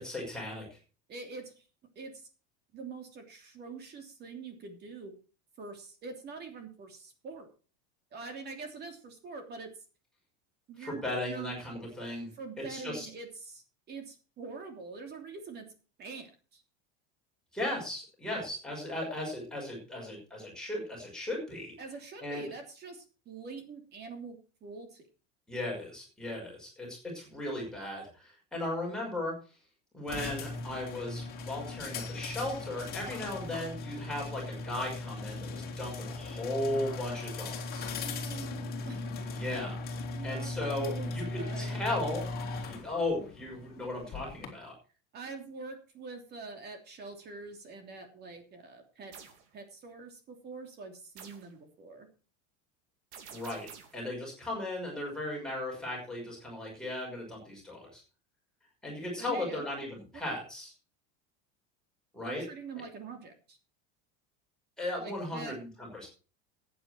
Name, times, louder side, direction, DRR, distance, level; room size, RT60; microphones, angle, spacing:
voice 1, 0.0-0.7 10.8-12.3 12.7-13.1 17.5-21.7 22.2-22.5 25.5-29.3 29.9-37.9 39.3-39.8 40.2-42.3 42.6-44.7 53.3-53.7 53.9-58.0 58.8-60.7 62.1-62.4 64.8-66.1, left 1 dB, ahead, -3 dB, 5.9 m, -36 dB
voice 2, 1.1-1.7 1.9-2.3 2.7-5.1 5.6-7.5 8.1-9.7 10.7-11.5 12.4-15.7 16.0-16.6 21.8-25.0 38.0-39.0 40.1-40.5 40.8-41.8 45.1-49.1 49.5-52.1 59.2-59.6 60.1-60.2 62.2-63.6 65.0-65.6, right 4 dB, 30° right, 5 dB, 3.0 m, -44 dB
sound 1, 30.1-44.5, left 3 dB, 25° left, 3.0 m, -38 dB
sound 2, 49.1-49.4 51.2-51.5 53.1-54.0, right 7 dB, 85° right, 3.2 m, -49 dB
14.5 x 9.2 x 4.5 m, 0.36 s
supercardioid pair, 160°, 34 cm